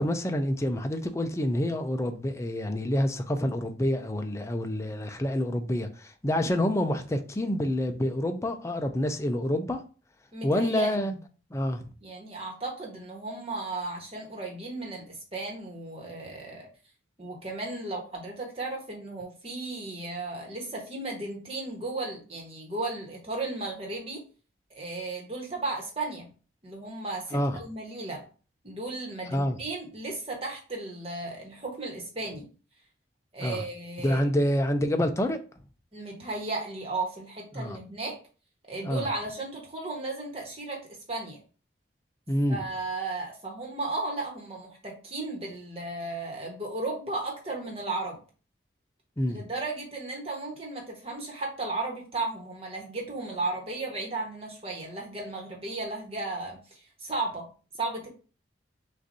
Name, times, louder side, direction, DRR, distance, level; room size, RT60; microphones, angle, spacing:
voice 1, 0.0-9.8 10.4-11.2 11.5-11.8 27.3-27.6 29.3-29.6 33.4-33.6 34.0-35.4 37.5-37.8 38.8-39.1 42.3-42.6 49.2-49.4, left 1 dB, 15° left, 0.4 m, -27 dB
voice 2, 10.3-11.2 12.0-16.7 17.2-24.2 24.7-26.3 26.6-28.2 28.6-32.5 33.3-34.2 35.9-38.2 38.7-41.4 42.5-48.2 49.3-57.5 57.8-58.1, right 2 dB, 30° right, 1.3 m, -35 dB
6.2 x 2.6 x 2.7 m
head